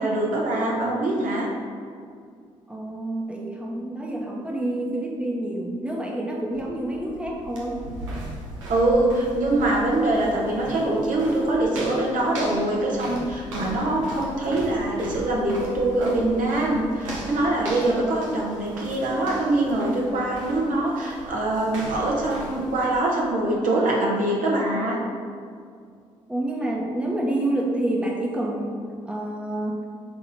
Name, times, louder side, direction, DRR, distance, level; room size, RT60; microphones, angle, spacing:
voice 1, 0.0-1.5 8.7-25.0, right 2 dB, 55° right, -2 dB, 1.1 m, -23 dB
voice 2, 2.7-7.8 26.3-29.8, right 1 dB, 5° right, -2 dB, 1.0 m, -28 dB
sound 1, 6.5-22.9, right 1 dB, 85° right, 0.8 m, -38 dB
5.9 x 4.0 x 4.1 m, 2.2 s
figure-of-eight pair, 40°, 16 cm